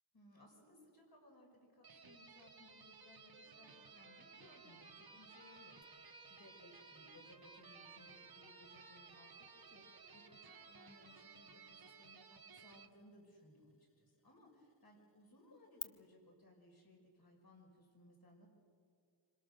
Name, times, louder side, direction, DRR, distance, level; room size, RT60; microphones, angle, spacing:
voice 1, 0.1-18.5, left 1 dB, 50° left, 0 dB, 5.9 m, -64 dB
sound 1, 1.8-12.9, right 5 dB, 50° right, 1.5 m, -59 dB
Trumpet, 3.4-12.3, right 2 dB, 15° right, 1.4 m, -64 dB
sound 2, 5.8-15.8, left 4 dB, 30° left, 0.9 m, -60 dB
28.0 x 26.5 x 6.5 m, 2.2 s
wide cardioid pair, 110°, 46 cm